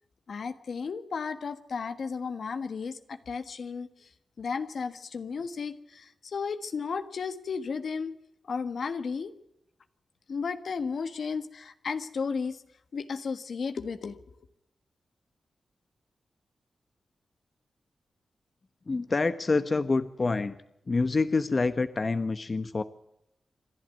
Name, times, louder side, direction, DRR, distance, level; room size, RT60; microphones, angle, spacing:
voice 1, 0.3-4.1 4.4-8.1 8.5-9.3 10.3-12.6 12.9-14.2, left 5 dB, 70° left, 9 dB, 1.4 m, -34 dB
voice 2, 18.9-20.6 20.9-22.8, left 3 dB, 45° left, 11 dB, 1.1 m, -27 dB
27.5 x 11.5 x 9.2 m, 0.81 s
cardioid pair, 45°, 0 cm